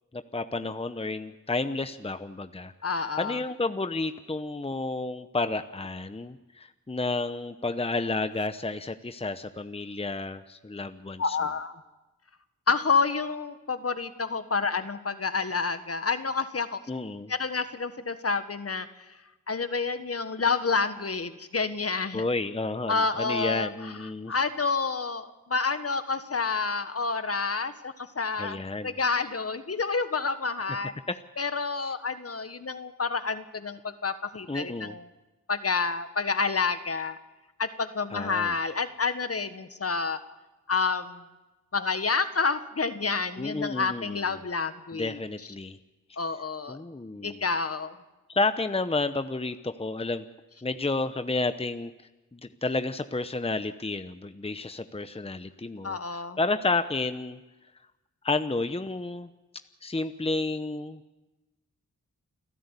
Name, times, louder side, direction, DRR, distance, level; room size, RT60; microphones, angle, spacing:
voice 1, 0.1-2.7 3.0-11.4 16.9-17.3 22.1-24.3 28.4-28.9 31.8-31.9 34.5-34.9 38.1-38.5 43.4-44.2 44.9-45.8 46.7-47.4 48.3-50.2 50.6-51.9 52.3-57.4 58.2-59.3 59.8-61.0, left 3 dB, 20° left, 10 dB, 0.9 m, -31 dB
voice 2, 2.8-3.4 11.2-11.7 12.7-16.8 17.3-18.9 19.5-22.2 22.9-23.9 24.3-30.9 31.4-35.1 35.5-37.2 37.6-40.2 40.7-41.2 41.7-45.2 46.2-46.8 47.2-48.0 55.8-56.4, left 4 dB, 50° left, 10 dB, 1.5 m, -29 dB
29.5 x 11.0 x 8.3 m, 1.1 s
cardioid pair, 50°, 32 cm